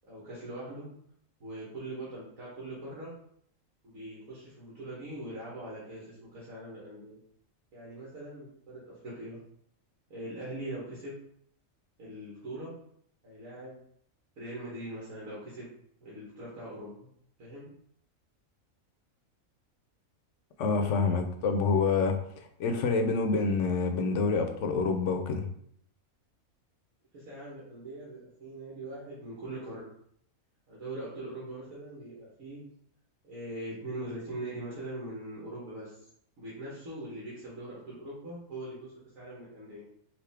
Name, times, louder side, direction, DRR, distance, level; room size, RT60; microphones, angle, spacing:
voice 1, 0.1-0.9 1.4-3.1 3.8-7.2 7.7-9.4 10.1-11.2 12.0-12.7 13.2-13.8 14.4-15.7 16.0-17.1 17.4-17.7 27.1-29.9 30.7-32.6 33.2-36.1 36.4-39.8, right 1 dB, 75° right, -7 dB, 1.7 m, -41 dB
voice 2, 20.6-25.5, left 4 dB, 70° left, 6 dB, 0.9 m, -27 dB
5.1 x 2.6 x 3.5 m, 0.67 s
omnidirectional pair, 1.4 m